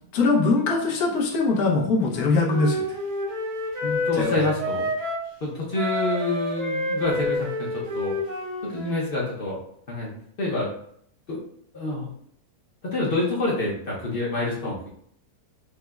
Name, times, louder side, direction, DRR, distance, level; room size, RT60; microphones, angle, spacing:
voice 1, 0.1-2.8 4.1-4.3, left 3 dB, 75° left, -1 dB, 1.2 m, -22 dB
Wind instrument woodwind instrument, 2.1-5.3 5.7-9.1, left 1 dB, 80° right, 1.3 m, -29 dB
voice 2, 3.8-4.9 5.4-7.7 7.9-8.1 8.7-9.6 9.9-10.7 11.3-11.4 11.7-12.2 12.8-14.9, left 2 dB, 50° left, -5 dB, 0.7 m, -27 dB
4.9 x 2.0 x 2.2 m, 0.67 s
omnidirectional pair, 1.7 m